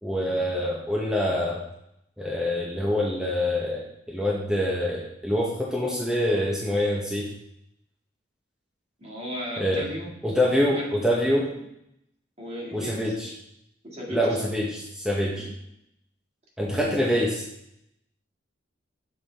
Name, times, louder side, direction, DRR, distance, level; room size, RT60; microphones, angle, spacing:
voice 1, 0.0-1.6 2.2-7.3 9.6-9.8 10.2-11.5 12.7-13.3 14.1-15.4 16.6-17.4, left 1 dB, 5° right, -5 dB, 0.9 m, -25 dB
voice 2, 9.0-10.1 10.7-10.9 11.5-11.6 12.4-13.1 13.8-14.5 15.3-15.5 16.7-17.0, equal, 35° right, -4 dB, 1.8 m, -36 dB
7.3 x 4.6 x 3.3 m, 0.78 s
head